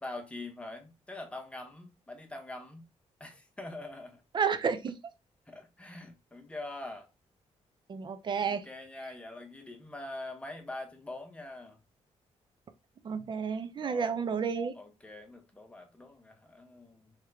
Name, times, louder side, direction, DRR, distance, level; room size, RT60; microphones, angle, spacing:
voice 1, 0.0-2.8 3.2-4.2 5.5-7.1 8.4-11.8 13.8-14.2 14.7-17.1, left 2 dB, 10° left, 0.8 m, -44 dB
voice 2, 4.3-4.9 7.9-8.6 13.0-14.7, right 6 dB, 40° right, 0.5 m, -31 dB
3.5 x 3.2 x 3.4 m
cardioid pair, 130°, 12 cm